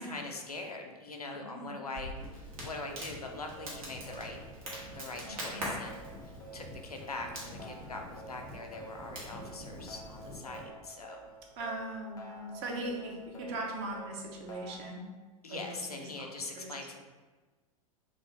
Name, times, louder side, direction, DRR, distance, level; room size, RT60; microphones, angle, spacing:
voice 1, 0.0-4.4 4.9-11.2 15.4-17.0, left 3 dB, 90° left, 2 dB, 0.4 m, -42 dB
Crackle, 1.9-10.6, equal, 70° right, 1.0 m, -44 dB
sound 1, 3.5-14.9, right 2 dB, 15° left, 0.4 m, -50 dB
voice 2, 5.2-5.7 11.6-15.0 15.5-15.8 16.6-16.7, right 1 dB, 45° right, 0 dB, 0.6 m, -39 dB
2.4 x 2.3 x 3.1 m, 1.3 s
figure-of-eight pair, 90°, 19 cm